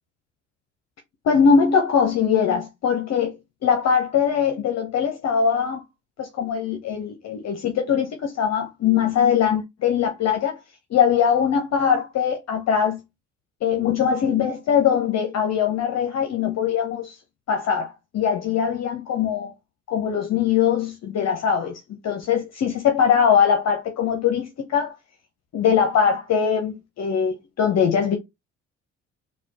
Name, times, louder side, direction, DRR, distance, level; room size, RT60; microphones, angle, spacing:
voice 1, 1.2-3.3 3.6-5.8 6.2-10.6 10.9-13.0 13.6-17.2 17.5-19.5 19.9-21.8 22.0-24.9 25.5-28.2, left 7 dB, 40° left, 0.8 m, -21 dB
4.2 x 2.4 x 2.8 m
figure-of-eight pair, 45°, 38 cm